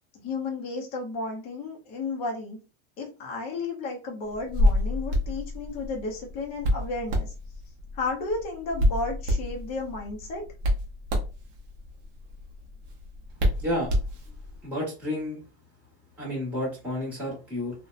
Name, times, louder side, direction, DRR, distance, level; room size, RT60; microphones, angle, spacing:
voice 1, 0.2-2.6 3.0-7.3 7.9-10.4, left 3 dB, 20° left, -1 dB, 0.5 m, -33 dB
Hands, 4.3-14.6, left 1 dB, 35° right, 0.6 m, -29 dB
voice 2, 13.6-13.9 14.6-15.4 16.2-17.7, left 1 dB, 5° right, -7 dB, 1.0 m, -30 dB
2.7 x 2.1 x 2.4 m, 0.31 s
supercardioid pair, 170°, 33 cm